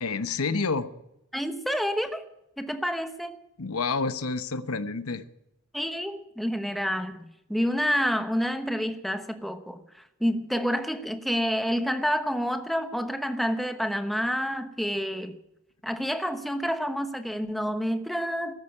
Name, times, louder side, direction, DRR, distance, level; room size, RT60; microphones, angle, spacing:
voice 1, 0.0-0.9 3.6-5.2, left 4 dB, 75° left, 1.0 m, -28 dB
voice 2, 1.3-2.2 2.6-3.4 5.7-9.8 10.2-15.4 15.8-18.5, equal, ahead, 1.0 m, -28 dB
14.0 x 10.0 x 9.6 m
head